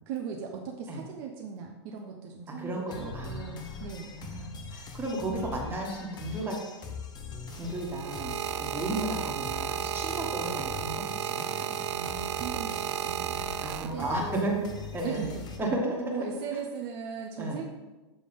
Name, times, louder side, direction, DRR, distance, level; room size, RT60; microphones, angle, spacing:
voice 1, 0.1-4.1 11.9-14.5 15.0-15.8 16.1-17.6, right 6 dB, 50° right, 1 dB, 0.8 m, -39 dB
voice 2, 2.5-3.8 4.1-6.6 7.5-11.7 13.6-14.6 14.9-15.2 15.6-16.4 17.4-17.6, right 1 dB, 15° right, -2 dB, 1.7 m, -34 dB
sound 1, 2.9-15.6, left 5 dB, 30° left, 1.0 m, -42 dB
sound 2, 7.5-14.3 15.2-15.5, right 10 dB, 75° right, 0.4 m, -34 dB
7.1 x 3.3 x 5.4 m, 1.1 s
hypercardioid pair, 115°, 15 cm